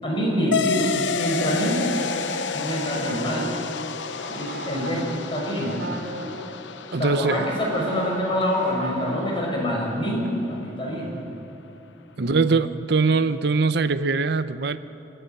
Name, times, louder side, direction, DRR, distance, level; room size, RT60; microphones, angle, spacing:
voice 1, 0.0-1.8 2.5-3.5 4.2-5.8 7.0-11.2 12.2-12.4, equal, 30° left, -3 dB, 6.0 m, -26 dB
sound 1, 0.5-9.5, left 6 dB, 85° left, 0.8 m, -31 dB
sound 2, 0.9-6.6 7.0-10.0 10.2-10.3 10.9-11.2, right 2 dB, 85° right, 3.1 m, -37 dB
voice 2, 6.9-7.5 12.2-14.8, right 4 dB, 65° right, 13 dB, 0.7 m, -22 dB
28.0 x 9.9 x 9.2 m, 2.9 s
head